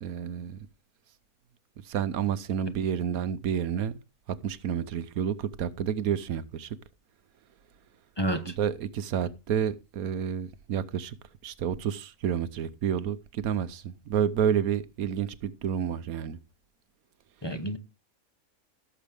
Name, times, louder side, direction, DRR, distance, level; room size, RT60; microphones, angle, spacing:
voice 1, 0.0-0.6 1.9-4.0 4.3-6.8 8.4-11.1 11.4-16.4, right 8 dB, 85° right, 1.3 m, -30 dB
voice 2, 8.2-8.5 17.4-17.8, right 1 dB, 20° left, 1.1 m, -29 dB
17.0 x 7.3 x 3.4 m
omnidirectional pair, 1.5 m